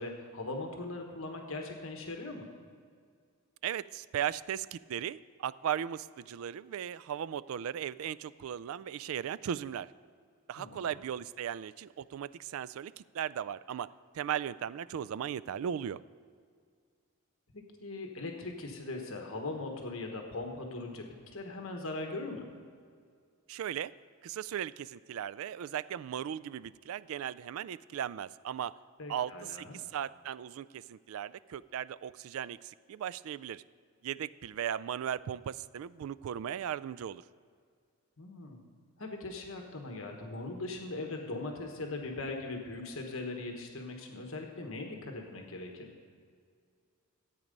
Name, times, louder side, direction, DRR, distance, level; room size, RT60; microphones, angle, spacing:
voice 1, 0.0-2.5 10.6-10.9 17.5-22.5 29.0-29.8 38.2-38.6 39.0-45.9, left 2 dB, 65° left, 2 dB, 1.3 m, -40 dB
voice 2, 3.6-9.9 10.5-16.0 23.5-23.9 24.2-28.8 29.1-33.6 34.0-37.2, right 9 dB, 70° right, 19 dB, 0.3 m, -37 dB
14.0 x 8.5 x 5.3 m, 2.1 s
head